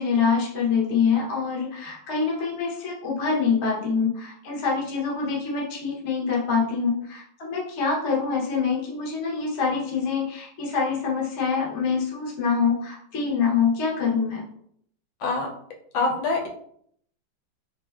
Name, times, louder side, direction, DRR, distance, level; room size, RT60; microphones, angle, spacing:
voice 1, 0.0-14.4, left 5 dB, 50° left, -4 dB, 0.8 m, -25 dB
voice 2, 15.9-16.5, left 3 dB, 80° left, 1 dB, 1.3 m, -24 dB
3.1 x 2.5 x 2.2 m, 0.66 s
omnidirectional pair, 2.2 m